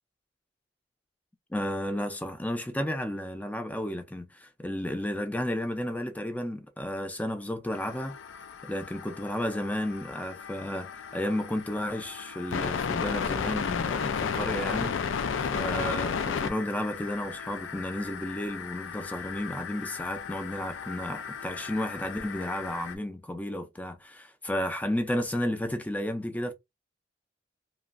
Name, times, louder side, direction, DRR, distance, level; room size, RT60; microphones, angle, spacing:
voice 1, 1.5-8.1 8.6-15.0 15.4-26.5, left 1 dB, 10° left, 0.4 m, -32 dB
sound 1, 7.7-22.9, left 6 dB, 85° left, 0.4 m, -34 dB
2.9 x 2.4 x 2.4 m
head